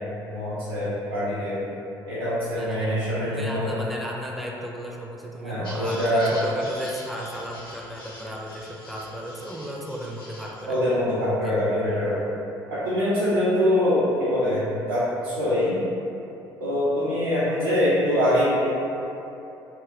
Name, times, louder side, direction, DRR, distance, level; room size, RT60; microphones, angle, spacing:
voice 1, 0.1-1.5 2.1-3.7 5.4-6.3 10.7-12.2 12.7-15.8 16.6-18.7, left 1 dB, 85° right, -13 dB, 0.5 m, -24 dB
voice 2, 2.5-11.0 11.4-11.6, equal, ahead, -2 dB, 0.4 m, -35 dB
sound 1, 5.6-10.6, left 1 dB, 85° left, 0.4 m, -44 dB
2.8 x 2.7 x 2.4 m, 2.9 s
figure-of-eight pair, 50°, 12 cm